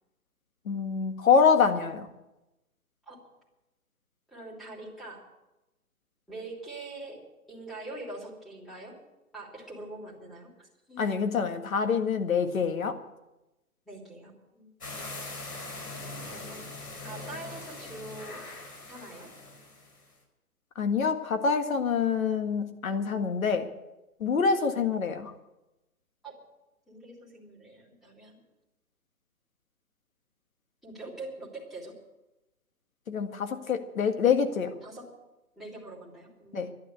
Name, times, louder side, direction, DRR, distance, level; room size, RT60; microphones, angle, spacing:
voice 1, 0.7-2.1 11.0-12.9 20.8-23.7 24.2-25.3 33.1-34.7 36.5-36.7, left 6 dB, 60° left, 7 dB, 1.9 m, -26 dB
voice 2, 4.3-5.2 6.3-7.2 7.5-8.9 9.3-11.0 13.9-14.7 16.3-16.7 17.0-18.4 18.9-19.3 26.2-26.3 26.9-28.4 30.8-31.9 34.8-35.1 35.6-36.7, right 2 dB, ahead, -7 dB, 3.1 m, -43 dB
sound 1, 14.8-20.0, left 2 dB, 85° left, 5.1 m, -41 dB
12.5 x 11.0 x 8.2 m, 0.97 s
hypercardioid pair, 145°, 46 cm